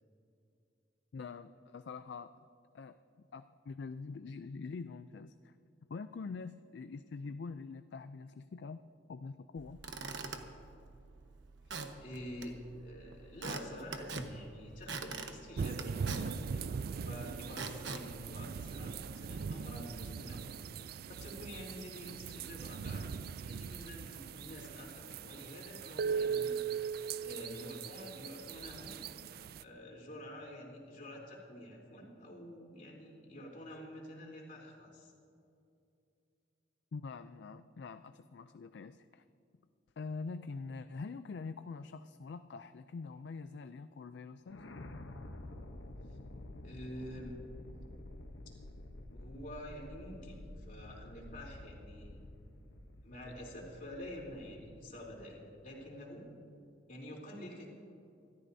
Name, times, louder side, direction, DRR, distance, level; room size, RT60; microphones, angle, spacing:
voice 1, 1.1-2.3 2.7-5.5 5.9-9.8 36.9-39.2 40.0-44.6, left 4 dB, 65° left, 10 dB, 0.4 m, -45 dB
Squeak / Wood, 9.6-19.2, right 4 dB, 75° right, 1.1 m, -45 dB
voice 2, 11.7-12.5 12.8-20.4 21.1-23.1 23.4-26.9 27.2-29.3 29.6-35.1 46.6-47.4 48.4-48.5 49.1-52.2 53.0-56.2 56.9-57.7, equal, 45° left, -3 dB, 3.4 m, -48 dB
sound 1, 15.6-29.6, right 6 dB, 55° right, 0.3 m, -40 dB
sound 2, 44.5-55.6, left 1 dB, 90° left, 0.9 m, -50 dB
26.0 x 13.5 x 2.7 m, 2.6 s
head